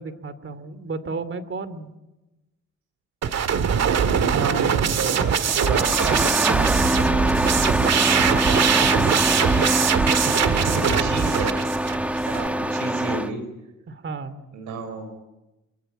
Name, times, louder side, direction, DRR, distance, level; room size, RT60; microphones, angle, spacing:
voice 1, 0.0-1.9 13.9-14.3, right 4 dB, 40° right, 14 dB, 2.7 m, -33 dB
sound 1, 3.2-12.5, right 7 dB, 60° right, 1.9 m, -22 dB
voice 2, 3.8-6.9 8.1-8.9 10.7-11.6 12.3-13.4 14.5-15.1, right 4 dB, 85° right, 8 dB, 4.5 m, -31 dB
Engine starting, 5.2-13.3, right 1 dB, 5° right, 1.2 m, -24 dB
27.5 x 23.5 x 9.2 m, 1.0 s
cardioid pair, 90°, 30 cm